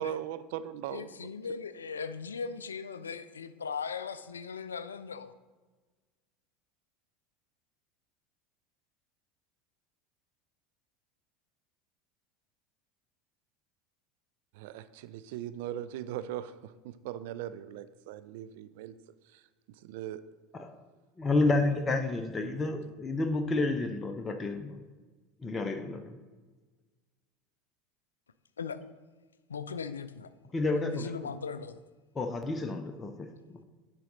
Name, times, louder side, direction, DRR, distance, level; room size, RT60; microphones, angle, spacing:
voice 1, 0.0-1.6 14.5-19.0 19.3-19.4 19.8-20.2 21.5-21.8 22.4-22.7, right 11 dB, 60° right, 13 dB, 0.3 m, -40 dB
voice 2, 0.9-5.3 28.6-28.8 29.5-30.3 30.8-31.8, left 6 dB, 75° left, 13 dB, 0.3 m, -38 dB
voice 3, 21.2-24.8 25.4-26.2 30.5-31.1 32.2-33.3, left 2 dB, 20° left, 6 dB, 0.6 m, -30 dB
10.0 x 4.0 x 3.8 m, 1.3 s
figure-of-eight pair, 75°, 0 cm